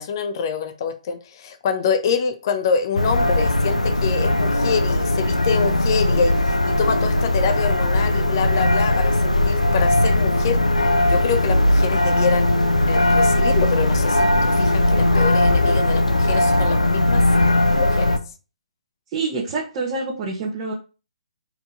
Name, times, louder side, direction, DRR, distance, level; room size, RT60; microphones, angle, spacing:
voice 1, 0.0-10.6 11.0-12.5 12.9-17.2 17.8-18.1, left 6 dB, 35° left, 8 dB, 0.8 m, -26 dB
sound 1, 3.0-18.2, left 1 dB, 80° left, 0.9 m, -19 dB
voice 2, 19.1-20.7, right 3 dB, 25° right, -2 dB, 1.4 m, -26 dB
5.4 x 4.7 x 4.0 m, 0.33 s
figure-of-eight pair, 135°, 4 cm